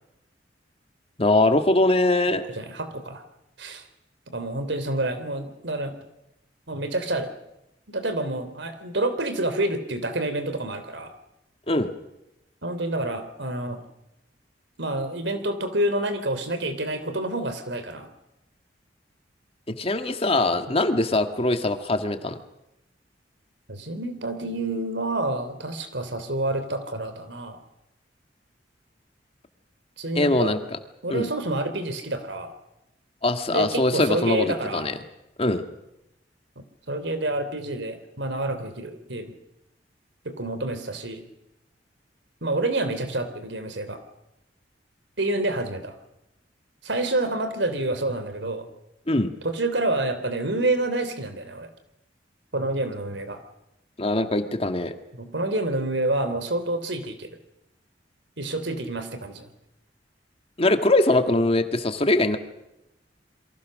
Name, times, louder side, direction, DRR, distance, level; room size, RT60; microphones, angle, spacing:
voice 1, 1.2-2.4 11.7-11.9 19.7-22.4 30.2-30.6 31.1-31.3 33.2-35.0 35.4-35.6 49.1-49.3 54.0-54.9 60.6-62.4, left 2 dB, 35° left, 7 dB, 1.7 m, -22 dB
voice 2, 2.3-3.2 3.6-3.8 4.3-5.9 6.7-7.3 7.9-11.1 12.6-13.8 14.8-18.1 23.7-27.6 30.0-30.6 31.0-32.6 33.5-34.9 36.9-39.4 40.2-41.2 42.4-44.0 45.2-46.0 46.8-48.7 49.4-51.7 52.5-53.4 55.1-57.3 58.4-59.5, right 2 dB, 80° right, 9 dB, 3.2 m, -28 dB
28.0 x 23.0 x 6.5 m, 0.90 s
head